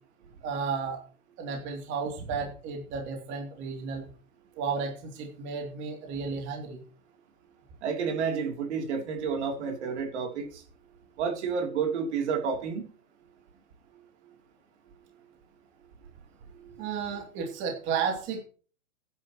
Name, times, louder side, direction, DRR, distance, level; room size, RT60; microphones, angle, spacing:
voice 1, 0.4-1.0 1.4-4.0 4.6-6.8 16.8-18.4, right 5 dB, 25° right, 2.9 m, -33 dB
voice 2, 7.8-10.6 11.2-12.9, right 6 dB, 50° right, 3.3 m, -30 dB
16.0 x 10.5 x 3.1 m
hypercardioid pair, 150°, 43 cm